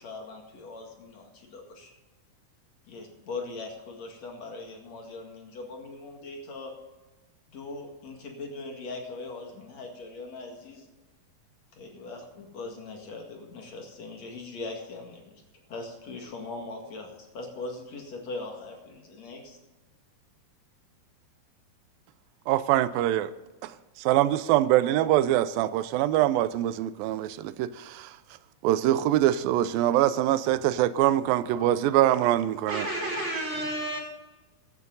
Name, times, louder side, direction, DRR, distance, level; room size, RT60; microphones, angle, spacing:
voice 1, 0.0-1.9 2.9-6.7 7.5-10.9 11.7-15.4 15.7-19.6, left 3 dB, 50° left, 2.9 m, -40 dB
voice 2, 22.5-23.3 23.6-28.1 28.6-32.9, right 13 dB, 85° right, 2.4 m, -24 dB
voice 3, 32.7-34.0, right 1 dB, 20° right, 5.8 m, -31 dB
15.0 x 12.0 x 3.9 m
omnidirectional pair, 4.1 m